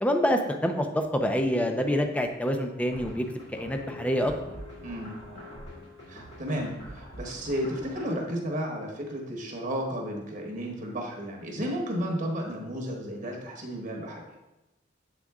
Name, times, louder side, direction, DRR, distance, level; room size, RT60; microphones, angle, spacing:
voice 1, 0.0-3.3 3.5-4.3, equal, 5° left, 5 dB, 0.4 m, -26 dB
sound 1, 1.5-7.6, left 4 dB, 45° left, 1.5 m, -49 dB
sound 2, 2.9-8.1, equal, 60° left, 2.2 m, -45 dB
voice 2, 4.8-5.2 6.1-14.3, equal, 40° right, 0 dB, 1.0 m, -33 dB
7.6 x 3.6 x 3.5 m, 0.94 s
head